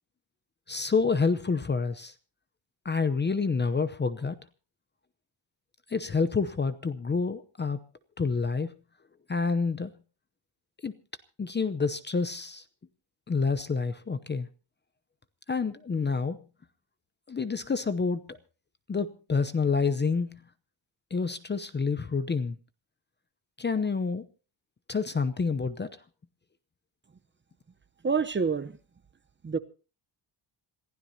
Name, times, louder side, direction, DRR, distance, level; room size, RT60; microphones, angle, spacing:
voice 1, 0.7-2.1 2.8-4.4 5.9-7.8 8.2-8.8 9.3-9.9 10.8-10.9 11.4-12.6 13.3-14.5 15.5-16.4 17.3-18.4 18.9-20.4 21.1-22.6 23.6-24.2 24.9-25.9, left 4 dB, 20° left, 0.7 m, -28 dB
voice 2, 28.0-28.7 29.4-29.6, right 5 dB, 25° right, 0.8 m, -27 dB
27.0 x 15.5 x 2.8 m
wide cardioid pair, 160°, 48 cm